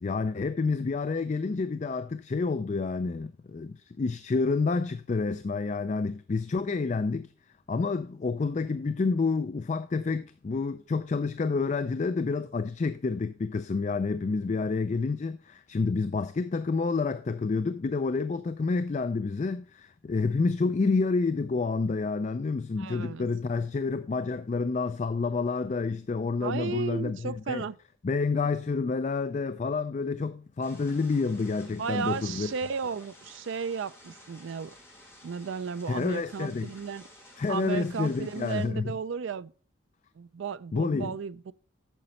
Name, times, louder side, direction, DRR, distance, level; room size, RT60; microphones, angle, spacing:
voice 1, 0.0-7.3 7.7-27.6 28.0-32.5 35.9-36.7 37.4-38.9 40.7-41.1, left 4 dB, 35° left, 0.3 m, -29 dB
voice 2, 22.8-23.3 26.4-27.8 28.3-28.5 31.7-34.7 35.2-37.0 37.5-39.5 40.2-41.5, right 6 dB, 65° right, 0.4 m, -34 dB
sound 1, 30.6-38.7, left 1 dB, 15° left, 5.3 m, -53 dB
9.0 x 6.7 x 4.2 m
head